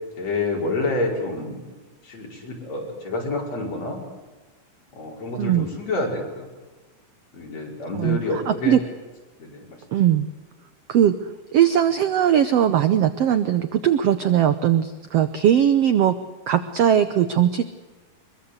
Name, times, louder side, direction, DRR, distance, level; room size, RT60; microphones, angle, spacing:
voice 1, 0.2-1.6 2.0-4.0 4.9-6.5 7.3-8.8 9.4-9.8, left 2 dB, 50° left, -1 dB, 6.2 m, -28 dB
voice 2, 7.9-8.8 9.9-10.3 10.9-11.1 11.5-16.2 16.5-17.6, right 10 dB, 75° right, 11 dB, 1.5 m, -19 dB
23.5 x 22.5 x 8.0 m, 1.2 s
omnidirectional pair, 3.9 m